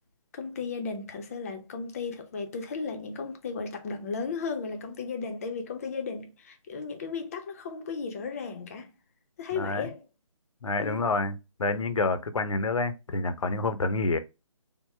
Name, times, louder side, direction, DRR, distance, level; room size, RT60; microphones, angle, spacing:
voice 1, 0.3-8.9 9.4-10.0 10.8-11.0, left 5 dB, 25° left, 0.5 m, -35 dB
voice 2, 9.5-9.9 10.6-14.2, left 3 dB, 65° left, 0.6 m, -28 dB
3.6 x 2.0 x 4.2 m
figure-of-eight pair, 150°, 18 cm